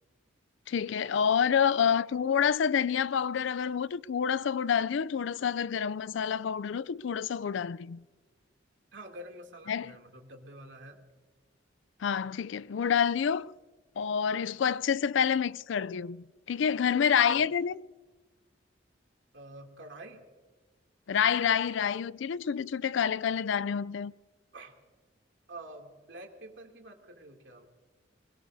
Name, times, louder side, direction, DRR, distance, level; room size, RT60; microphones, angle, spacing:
voice 1, 0.7-8.0 9.7-9.9 12.0-13.5 14.0-17.8 21.1-24.1, left 7 dB, 70° left, 0.4 m, -28 dB
voice 2, 8.9-11.0 17.3-17.5 19.3-20.2 24.5-24.7 25.5-27.7, right 1 dB, 65° right, 2.7 m, -47 dB
22.0 x 21.0 x 2.7 m
head